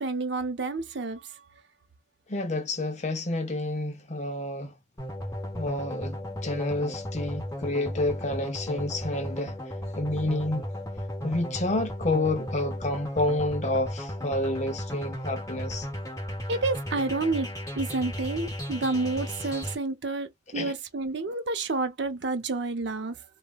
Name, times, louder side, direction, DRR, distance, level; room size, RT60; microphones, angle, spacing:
voice 1, 0.0-1.4 16.5-23.2, right 3 dB, 60° right, 0.7 m, -30 dB
voice 2, 2.3-4.7 5.6-9.5 10.0-10.7 11.2-15.9 20.5-20.7, left 2 dB, 35° left, 0.7 m, -29 dB
sound 1, 5.0-19.7, equal, 15° left, 1.1 m, -35 dB
3.2 x 2.3 x 2.3 m
head